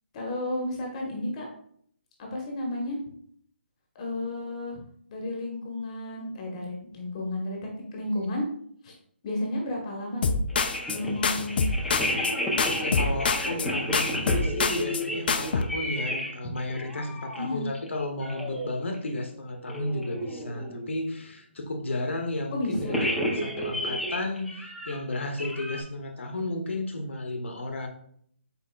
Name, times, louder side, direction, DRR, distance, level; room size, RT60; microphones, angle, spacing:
voice 1, 0.1-1.5 2.2-3.0 3.9-4.8 5.1-7.6 7.9-8.4 8.8-8.9 9.2-10.3 10.9-11.7 17.4-17.7 22.5-23.0, left 1 dB, 30° left, -1 dB, 1.2 m, -32 dB
sound 1, 10.2-11.0 11.2-12.3 12.6-13.7 13.9-15.0 15.3-15.6, left 4 dB, 50° left, 0.5 m, -26 dB
sound 2, 10.5-16.3 16.6-17.5 17.7-17.9 18.2-18.7 18.9-19.1 19.5-20.8 22.7-25.8, equal, ahead, 0.6 m, -32 dB
voice 2, 12.7-23.1 23.3-27.9, left 2 dB, 80° left, 4 dB, 0.9 m, -33 dB
5.5 x 4.2 x 2.3 m, 0.63 s
hypercardioid pair, 155°, 6 cm